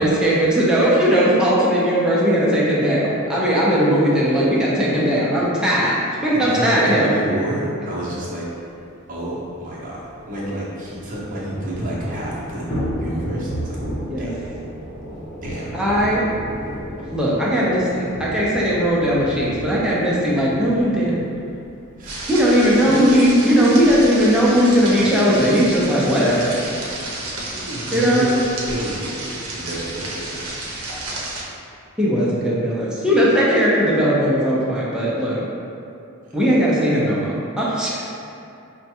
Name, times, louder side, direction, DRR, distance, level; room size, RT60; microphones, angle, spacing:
voice 1, 0.0-7.1 14.1-14.3 15.7-16.3 16.9-21.1 22.3-26.5 27.9-28.3 32.0-35.4 36.3-38.1, equal, 5° right, -7 dB, 0.6 m, -18 dB
voice 2, 6.3-8.5 9.1-12.7 13.0-13.8 14.2-14.4 15.4-15.7 22.0-22.3 22.6-22.9 23.7-23.8 27.5-30.6 36.2-36.4, right 1 dB, 40° right, -6 dB, 0.8 m, -29 dB
Thunder / Rain, 8.4-8.5 8.7-8.8 9.1-25.0, equal, 60° left, 0.9 m, -34 dB
sound 1, 22.1-31.4, right 2 dB, 85° right, 0.6 m, -31 dB
5.1 x 2.2 x 2.8 m, 2.5 s
head